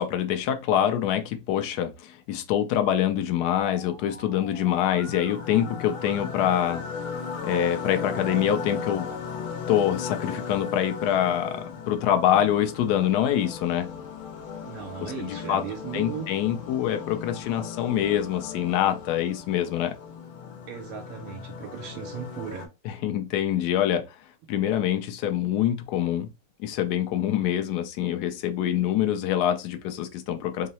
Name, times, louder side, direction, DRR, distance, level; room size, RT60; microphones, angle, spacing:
voice 1, 0.0-6.8 7.5-9.1 9.7-13.9 15.2-15.6 15.9-19.9 22.9-24.0 24.5-26.3 26.6-30.7, left 10 dB, 70° left, 1.0 m, -25 dB
Musical instrument, 3.6-9.2, left 3 dB, 30° left, 0.5 m, -43 dB
sound 1, 4.5-22.7, left 6 dB, 90° left, 1.5 m, -37 dB
voice 2, 14.6-16.3 20.7-22.7, right 8 dB, 85° right, 1.5 m, -37 dB
3.7 x 2.0 x 4.0 m
omnidirectional pair, 2.3 m